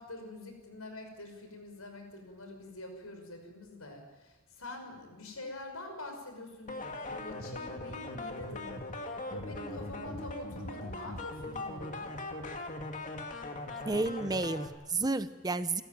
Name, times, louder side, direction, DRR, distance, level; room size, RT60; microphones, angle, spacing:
voice 1, 0.0-9.1 9.3-12.1, left 2 dB, 85° left, 5 dB, 5.9 m, -45 dB
sound 1, 6.7-14.7, left 2 dB, 35° left, 2.3 m, -40 dB
voice 2, 13.9-15.8, right 3 dB, 20° right, 12 dB, 0.8 m, -31 dB
28.5 x 13.5 x 9.4 m, 1.2 s
head